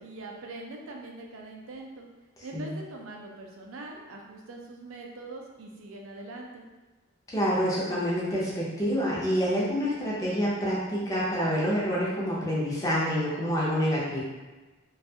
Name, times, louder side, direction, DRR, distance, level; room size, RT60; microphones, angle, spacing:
voice 1, 0.0-2.1 2.4-6.6, right 2 dB, 60° right, 0 dB, 0.4 m, -42 dB
voice 2, 7.3-14.2, equal, 15° left, -7 dB, 0.6 m, -27 dB
2.4 x 2.3 x 2.7 m, 1.2 s
head